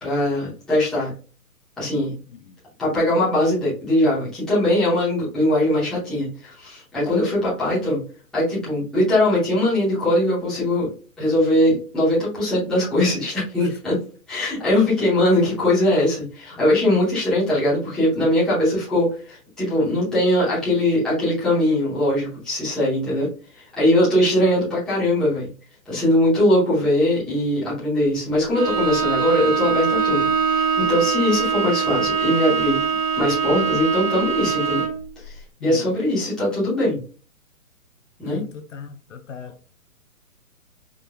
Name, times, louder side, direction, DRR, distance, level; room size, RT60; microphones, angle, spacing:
voice 1, 0.0-1.1 1.8-2.2 2.8-8.0 8.3-10.9 11.2-14.0 14.3-25.5 25.9-32.8 33.2-34.8 35.2-37.0 38.2-38.4, left 1 dB, ahead, 0.8 m, -21 dB
Bowed string instrument, 28.5-35.1, right 6 dB, 85° right, 1.3 m, -22 dB
voice 2, 38.2-39.7, left 7 dB, 55° left, 0.6 m, -37 dB
5.0 x 3.0 x 2.2 m
hypercardioid pair, 165°, 45 cm